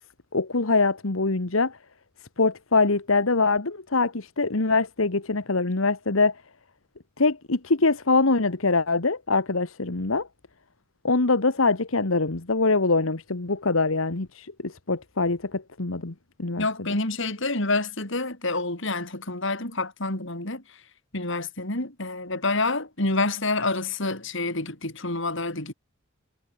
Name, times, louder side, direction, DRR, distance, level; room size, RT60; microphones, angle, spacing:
voice 1, 0.3-1.8 2.4-6.3 7.2-10.3 11.0-16.1 16.4-16.7, left 3 dB, 80° left, 1.5 m, -23 dB
voice 2, 16.6-20.6 21.1-25.7, left 2 dB, 65° left, 5.0 m, -28 dB
head